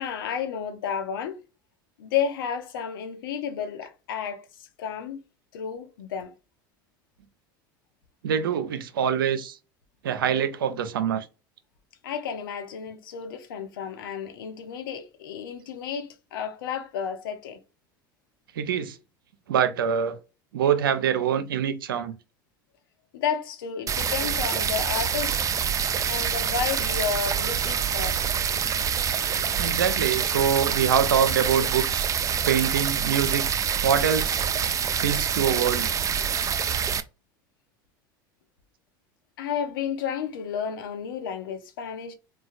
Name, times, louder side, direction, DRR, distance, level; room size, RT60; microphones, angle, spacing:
voice 1, 0.0-1.4 2.0-5.2 5.5-6.3 12.0-17.6 23.1-25.5 26.1-28.3 39.4-42.1, left 7 dB, 80° left, 0.6 m, -32 dB
voice 2, 8.2-9.6 10.0-11.3 18.6-19.0 19.5-20.2 20.5-22.1 29.6-32.1 32.4-33.4 33.8-34.5 35.0-35.9, right 8 dB, 90° right, 0.5 m, -24 dB
sound 1, 23.9-37.0, right 7 dB, 30° right, 0.4 m, -26 dB
3.2 x 2.2 x 2.4 m
hypercardioid pair, 80°, 11 cm